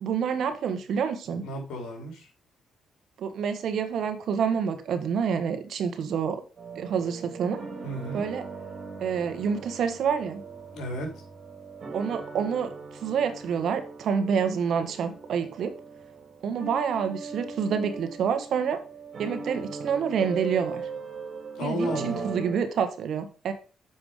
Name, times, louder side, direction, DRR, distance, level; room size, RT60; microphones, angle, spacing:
voice 1, 0.0-1.4 3.2-6.4 6.7-7.6 8.1-8.4 9.0-10.4 11.9-15.7 16.4-18.8 19.2-20.8 21.6-23.5, right 7 dB, 65° right, 1.4 m, -28 dB
voice 2, 1.4-2.3 7.8-8.2 10.7-11.1 21.5-22.3, equal, 80° left, 3.4 m, -32 dB
sound 1, 6.6-22.6, right 4 dB, 50° right, 3.0 m, -39 dB
7.2 x 5.2 x 5.0 m
cardioid pair, 90°, 0 cm